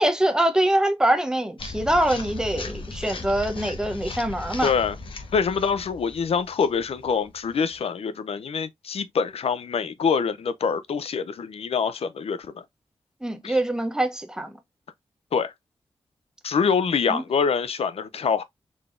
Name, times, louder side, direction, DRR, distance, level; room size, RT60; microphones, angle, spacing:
voice 1, 0.0-4.7 13.2-14.6 17.1-17.2, right 1 dB, 5° right, 0.7 m, -24 dB
sound 1, 1.6-7.8, left 3 dB, 55° left, 0.9 m, -37 dB
voice 2, 4.6-5.0 5.3-12.6 13.4-13.6 15.3-15.5 16.4-18.4, left 6 dB, 75° left, 0.5 m, -25 dB
3.9 x 3.4 x 2.4 m
wide cardioid pair, 100°, 10 cm